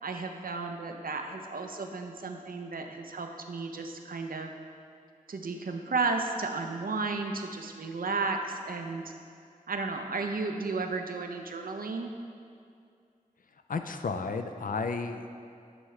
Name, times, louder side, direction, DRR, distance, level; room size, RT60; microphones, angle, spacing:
voice 1, 0.0-4.5 5.3-9.1 9.7-12.1, right 3 dB, 90° right, 4 dB, 0.5 m, -33 dB
voice 2, 13.7-15.4, left 4 dB, 75° left, 7 dB, 0.4 m, -33 dB
10.0 x 4.7 x 3.2 m, 2.3 s
wide cardioid pair, 70°, 14 cm